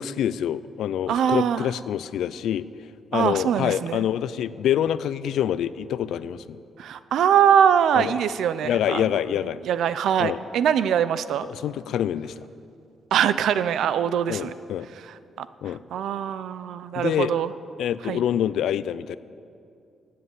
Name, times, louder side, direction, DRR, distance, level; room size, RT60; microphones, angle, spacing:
voice 1, 0.0-2.7 3.1-6.6 7.9-8.1 8.6-9.6 10.2-10.4 11.5-12.3 14.3-14.9 15.6-15.8 16.9-17.4 17.8-19.2, left 10 dB, 80° left, 16 dB, 0.4 m, -26 dB
voice 2, 1.1-1.7 3.1-4.0 6.8-9.2 9.6-11.5 13.1-14.5 15.0-17.5 18.0-18.2, right 8 dB, 70° right, 14 dB, 0.5 m, -23 dB
18.5 x 7.7 x 8.2 m, 2.5 s
wide cardioid pair, 180°, 0 cm